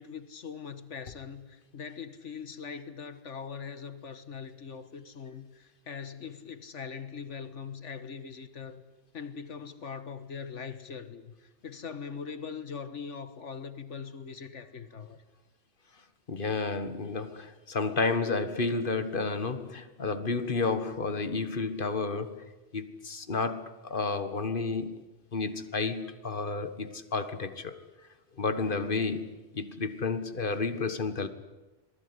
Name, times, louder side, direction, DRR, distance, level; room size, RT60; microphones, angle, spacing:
voice 1, 0.0-8.8 9.1-15.2, left 6 dB, 80° left, 1.8 m, -41 dB
voice 2, 16.3-22.4 22.7-25.0 25.3-27.8 28.4-31.3, left 4 dB, 45° left, 1.7 m, -31 dB
26.5 x 20.0 x 9.8 m
omnidirectional pair, 1.2 m